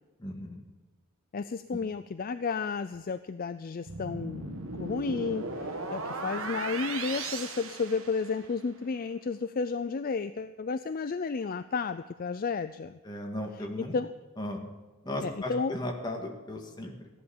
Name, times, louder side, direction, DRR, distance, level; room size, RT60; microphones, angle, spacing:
voice 1, 0.2-0.6 13.0-13.9 14.4-14.6 15.0-17.2, left 1 dB, 20° left, 2 dB, 1.9 m, -36 dB
voice 2, 1.3-13.0 13.9-14.1 15.2-15.7, left 4 dB, 40° left, 12 dB, 0.4 m, -32 dB
sound 1, 3.9-8.6, right 3 dB, 65° right, 1.5 m, -37 dB
14.5 x 11.0 x 7.1 m, 1.3 s
head